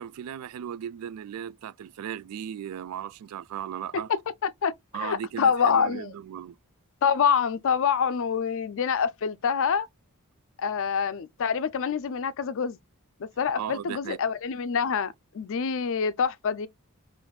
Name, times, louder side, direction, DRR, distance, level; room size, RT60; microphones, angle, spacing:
voice 1, 0.0-4.1 4.9-6.6 13.6-14.2, right 9 dB, 80° right, 0.3 m, -36 dB
voice 2, 3.9-4.7 5.0-6.1 7.0-9.9 10.6-12.8 13.2-16.7, left 6 dB, 60° left, 0.4 m, -26 dB
5.7 x 2.5 x 2.3 m
head